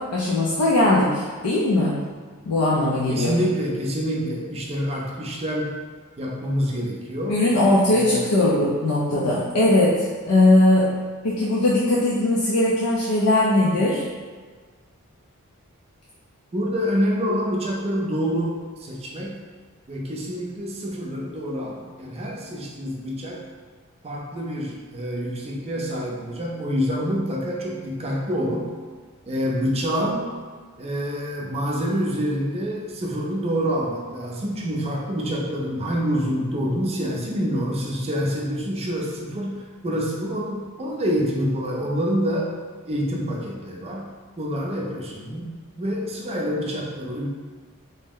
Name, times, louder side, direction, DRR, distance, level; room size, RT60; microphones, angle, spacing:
voice 1, 0.0-2.0 2.5-3.4 7.3-10.9 11.2-14.0, left 1 dB, 85° left, -6 dB, 0.5 m, -20 dB
voice 2, 3.1-5.7 6.2-7.4 7.9-8.3 16.5-19.4 19.9-23.4 24.0-28.7 29.3-30.3 30.8-42.5 42.9-44.1 44.4-47.3, equal, 25° right, -2 dB, 0.4 m, -27 dB
2.7 x 2.0 x 3.6 m, 1.5 s
head